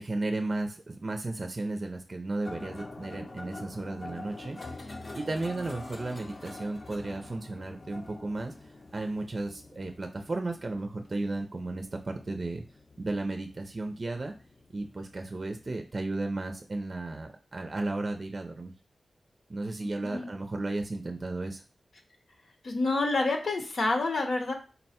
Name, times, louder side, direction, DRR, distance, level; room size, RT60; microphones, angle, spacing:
voice 1, 0.0-8.5 8.9-12.6 13.0-14.3 14.7-18.7 19.5-21.6, right 2 dB, 45° right, 4 dB, 0.5 m, -34 dB
sound 1, 2.4-15.7, left 2 dB, 45° left, 0.6 m, -46 dB
voice 2, 19.8-20.3 22.6-24.5, left 2 dB, 75° left, 3 dB, 0.8 m, -28 dB
4.0 x 2.2 x 4.2 m, 0.35 s
cardioid pair, 50°, 0 cm